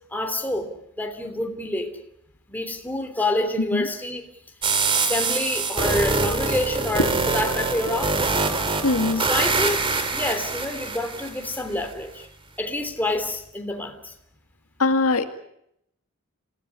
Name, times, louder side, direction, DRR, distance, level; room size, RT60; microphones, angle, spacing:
voice 1, 0.1-2.0 2.5-4.3 4.9-8.4 9.2-12.3 12.6-14.1, left 1 dB, 10° left, 4 dB, 3.1 m, -28 dB
sound 1, 4.6-11.6, right 3 dB, 25° right, 2.2 m, -24 dB
voice 2, 8.8-9.2 14.8-15.3, left 3 dB, 75° left, 7 dB, 2.0 m, -21 dB
27.5 x 17.0 x 9.8 m, 0.76 s
head